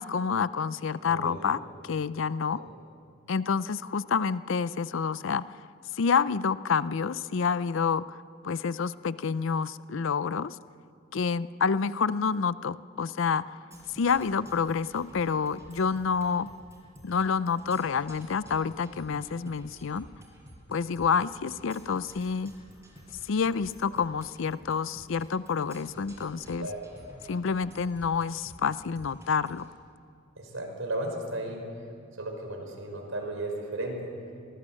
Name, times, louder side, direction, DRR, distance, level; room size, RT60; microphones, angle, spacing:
voice 1, 0.0-2.6 3.3-5.7 5.9-10.6 11.1-13.6 13.9-16.5 17.0-20.1 20.7-22.5 23.2-26.7 27.3-29.7, left 5 dB, 65° left, 16 dB, 0.5 m, -28 dB
voice 2, 1.0-1.5 2.5-2.6 26.6-26.9 30.4-31.6 32.2-34.1, right 1 dB, 75° right, 2 dB, 5.2 m, -35 dB
Percussion, 13.7-29.7, equal, 15° right, 5.6 m, -51 dB
24.5 x 19.5 x 7.6 m, 2.3 s
head